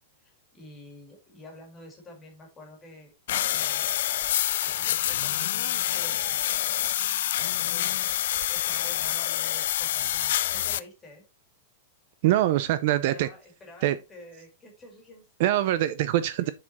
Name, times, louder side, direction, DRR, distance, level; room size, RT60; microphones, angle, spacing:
voice 1, 0.0-3.1 3.5-3.9 4.6-6.4 7.7-8.0 8.5-11.2 13.0-15.2, left 1 dB, 10° left, 2.0 m, -48 dB
sound 1, 3.3-10.8, left 12 dB, 55° left, 0.4 m, -27 dB
voice 2, 12.2-13.3 13.8-14.0 15.4-16.5, right 14 dB, 40° right, 0.4 m, -23 dB
7.4 x 4.3 x 4.0 m
supercardioid pair, 175°, 0 cm